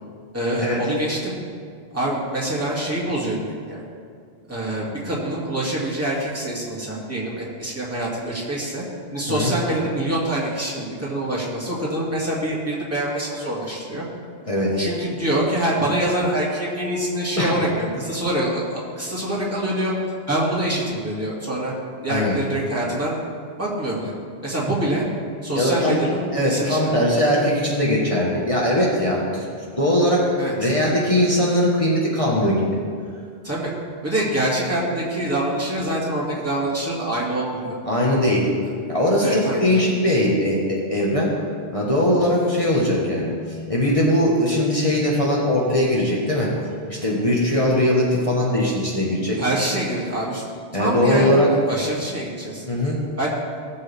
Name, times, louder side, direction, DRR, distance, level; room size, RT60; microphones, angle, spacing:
voice 1, 0.3-1.3 1.9-3.8 4.5-8.8 9.1-14.0 14.8-19.9 20.3-21.7 22.0-23.2 23.6-24.1 24.4-25.0 25.4-27.0 30.4-30.7 33.4-33.7 34.0-37.8 39.2-39.8 49.4-50.4 50.7-51.4 51.7-52.6 53.2-53.3, right 1 dB, 15° right, -6 dB, 2.5 m, -25 dB
voice 2, 14.5-14.8 17.4-17.5 22.1-22.4 25.5-26.0 26.3-32.7 37.9-38.5 38.9-41.3 41.7-46.5 46.9-49.4 50.7-51.5 52.7-53.0, left 1 dB, 35° left, -4 dB, 1.6 m, -20 dB
18.0 x 7.2 x 3.5 m, 2.1 s
omnidirectional pair, 1.1 m